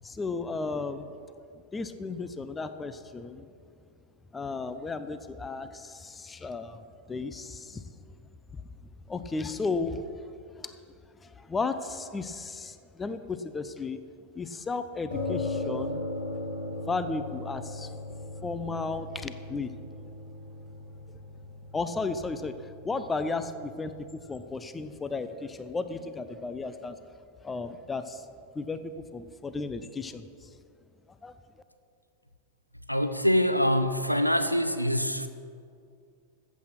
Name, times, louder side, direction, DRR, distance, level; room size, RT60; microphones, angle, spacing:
voice 1, 0.0-1.1 1.7-3.5 4.3-7.9 8.5-8.6 9.1-10.0 10.6-10.8 11.2-14.0 14.3-16.0 16.9-17.9 18.4-19.7 21.7-27.0 27.4-28.3 28.5-30.5 31.2-31.4, left 3 dB, 15° left, 11 dB, 0.6 m, -34 dB
sound 1, 15.1-24.2, left 2 dB, 60° left, 2.7 m, -38 dB
voice 2, 32.9-35.3, equal, 90° left, 9 dB, 0.7 m, -25 dB
14.0 x 8.4 x 5.9 m, 2.4 s
figure-of-eight pair, 90°, 0 cm